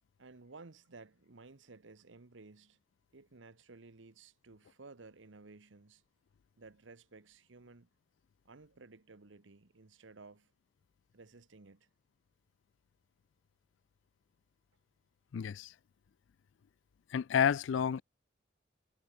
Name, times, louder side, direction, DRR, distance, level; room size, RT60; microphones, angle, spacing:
voice 1, 0.2-2.8 3.1-6.0 6.6-7.9 8.4-10.5 11.1-11.9, right 3 dB, 90° right, 1.1 m, -55 dB
voice 2, 15.3-15.7 17.1-18.0, left 7 dB, 90° left, 0.4 m, -30 dB
head